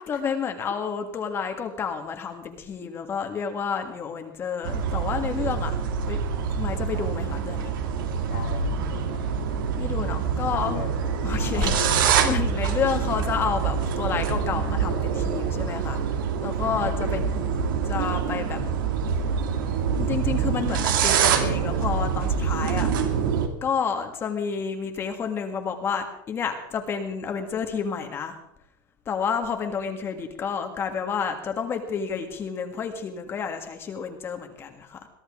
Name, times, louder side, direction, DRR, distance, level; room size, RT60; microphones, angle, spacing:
voice 1, 0.1-5.7 6.1-6.2 6.5-7.7 9.8-10.8 11.2-17.2 17.8-18.6 20.0-22.9 23.6-28.4 29.0-35.1, left 6 dB, 20° left, 5 dB, 1.7 m, -30 dB
sound 1, 4.6-23.5, right 6 dB, 80° right, 2.3 m, -25 dB
voice 2, 8.3-9.6 10.5-10.9 11.5-12.0 17.0-17.8, left 8 dB, 75° left, -3 dB, 3.5 m, -37 dB
23.0 x 14.5 x 3.7 m, 0.75 s
supercardioid pair, 160°, 11 cm